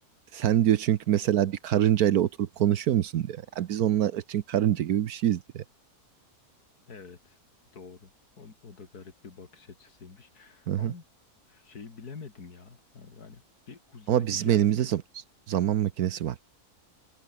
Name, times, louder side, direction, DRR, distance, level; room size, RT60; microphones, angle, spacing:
voice 1, 0.3-5.6 10.7-10.9 14.1-15.0 15.5-16.3, right 11 dB, 75° right, 1.3 m, -25 dB
voice 2, 6.9-7.4 7.7-8.1 8.4-11.0 11.5-14.9, left 5 dB, 90° left, 3.0 m, -47 dB
omnidirectional pair, 1.6 m